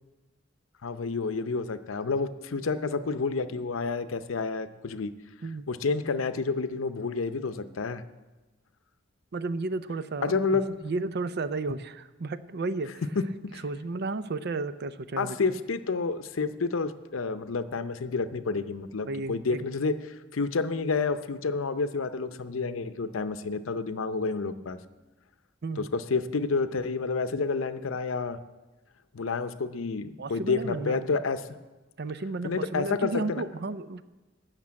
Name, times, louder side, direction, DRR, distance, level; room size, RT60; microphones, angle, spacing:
voice 1, 0.8-5.1 5.7-8.0 10.2-10.8 13.2-13.6 15.2-24.8 25.8-28.4 29.1-31.4 32.4-33.4, left 4 dB, 90° left, 11 dB, 0.6 m, -29 dB
voice 2, 9.3-12.9 13.6-15.4 19.1-19.6 25.6-25.9 30.2-31.1 32.0-34.0, right 3 dB, 55° right, 13 dB, 0.5 m, -33 dB
12.0 x 6.6 x 8.6 m, 1.2 s
head